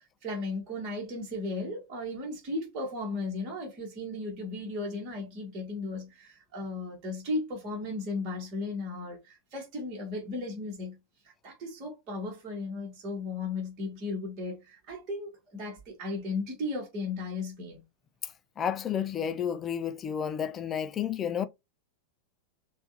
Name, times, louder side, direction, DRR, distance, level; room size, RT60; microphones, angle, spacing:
voice 1, 0.2-11.0 11.2-17.8, left 2 dB, 35° right, 2.0 m, -35 dB
voice 2, 18.2-21.4, left 8 dB, 25° left, 0.5 m, -31 dB
6.7 x 2.6 x 2.9 m
figure-of-eight pair, 90°, 0 cm